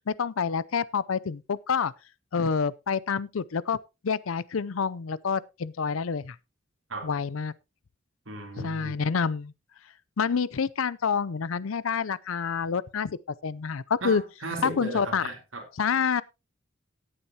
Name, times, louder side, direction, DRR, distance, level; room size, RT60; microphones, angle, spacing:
voice 1, 0.1-1.9 2.3-3.8 4.0-6.4 7.0-7.5 8.6-9.5 10.2-13.2 13.4-14.2 14.6-15.3 15.8-16.2, left 6 dB, 85° left, 0.5 m, -27 dB
voice 2, 8.2-9.0 14.0-15.6, right 2 dB, 75° right, 3.3 m, -36 dB
17.0 x 8.8 x 2.8 m
head